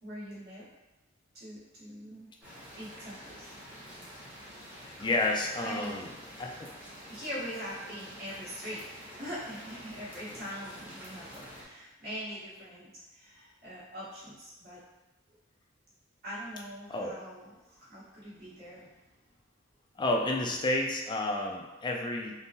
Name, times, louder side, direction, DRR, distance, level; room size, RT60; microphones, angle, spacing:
voice 1, 0.0-0.7 1.3-2.3 2.8-3.5 5.6-6.1 7.1-8.8 9.1-14.8 16.2-18.9, equal, 55° right, -10 dB, 1.1 m, -42 dB
sound 1, 2.4-11.6, equal, 10° right, 0.8 m, -48 dB
voice 2, 4.8-6.1 6.4-6.5 10.3-10.4 16.9-17.1 20.0-22.3, left 2 dB, 25° left, 1 dB, 0.3 m, -30 dB
3.5 x 2.0 x 2.7 m, 1.1 s
head